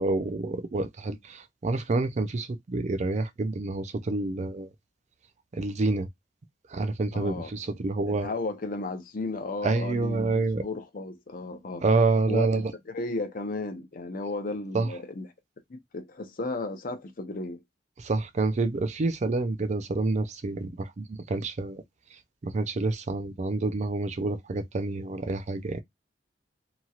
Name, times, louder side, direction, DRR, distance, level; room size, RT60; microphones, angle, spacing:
voice 1, 0.0-4.7 5.5-6.1 6.7-8.3 9.6-10.6 11.8-12.7 14.7-14.9 18.0-21.8 22.4-25.8, right 3 dB, 40° right, 0.4 m, -28 dB
voice 2, 7.1-7.7 8.1-11.8 12.3-15.3 15.7-17.6, left 3 dB, 50° left, 0.7 m, -34 dB
2.9 x 2.8 x 2.4 m
head